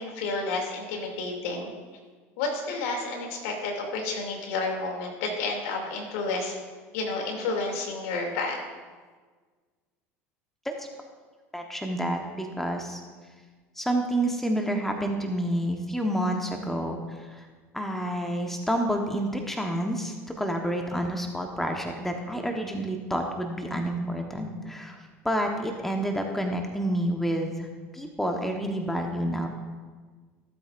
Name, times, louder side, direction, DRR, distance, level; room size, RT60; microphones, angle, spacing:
voice 1, 0.0-1.7 2.4-6.6 6.9-8.6, left 3 dB, 70° left, 1 dB, 2.7 m, -30 dB
voice 2, 11.5-13.0 13.8-17.4 17.7-25.0 25.2-27.7 27.9-29.5, right 1 dB, 5° left, 3 dB, 1.1 m, -29 dB
16.0 x 8.1 x 2.6 m, 1.5 s
hypercardioid pair, 80°, 8 cm